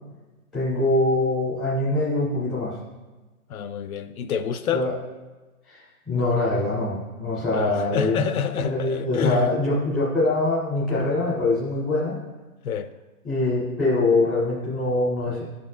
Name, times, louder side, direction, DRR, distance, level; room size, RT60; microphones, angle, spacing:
voice 1, 0.5-2.8 4.7-4.9 5.7-8.2 8.6-12.2 13.2-15.4, left 2 dB, ahead, 0.5 m, -23 dB
voice 2, 3.5-4.8 7.5-9.5 12.6-12.9, left 7 dB, 75° left, 0.5 m, -27 dB
11.0 x 4.1 x 2.3 m
hypercardioid pair, 175°, 44 cm